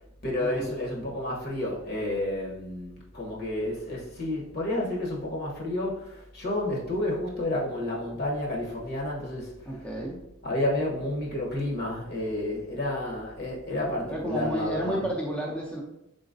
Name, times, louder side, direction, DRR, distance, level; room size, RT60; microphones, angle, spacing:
voice 1, 0.2-9.9 10.4-15.1, left 1 dB, 50° left, -2 dB, 1.1 m, -30 dB
voice 2, 9.7-10.2 14.1-15.8, right 1 dB, 5° left, -3 dB, 0.6 m, -31 dB
4.2 x 3.9 x 2.6 m, 0.84 s
head